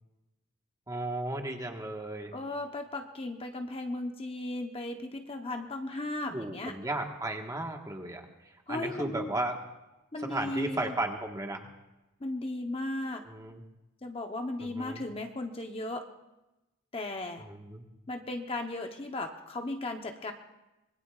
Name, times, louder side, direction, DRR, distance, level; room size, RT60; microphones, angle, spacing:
voice 1, 0.9-2.3 6.3-8.2 8.7-9.6 10.3-11.7 13.3-13.6 14.7-15.0 17.5-17.8, right 1 dB, 15° right, 2 dB, 1.4 m, -34 dB
voice 2, 2.3-6.8 8.7-9.3 10.1-10.9 12.2-13.2 14.0-16.1 16.9-17.5 18.1-20.3, left 2 dB, 30° left, 4 dB, 0.9 m, -36 dB
25.0 x 20.5 x 2.4 m, 1.0 s
head